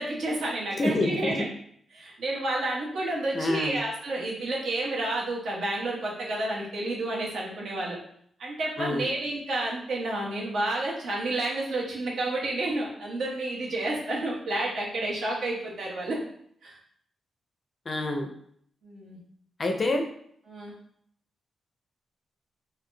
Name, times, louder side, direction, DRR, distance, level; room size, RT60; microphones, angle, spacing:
voice 1, 0.0-1.5 1.9-8.0 8.4-16.2 16.6-16.8 18.8-19.2 20.5-20.7, right 2 dB, 75° right, -3 dB, 1.0 m, -30 dB
voice 2, 0.8-1.5 3.3-3.8 8.8-9.1 17.9-18.3 19.6-20.0, left 2 dB, 30° left, 4 dB, 0.4 m, -27 dB
3.7 x 2.1 x 3.2 m, 0.67 s
wide cardioid pair, 150°, 0 cm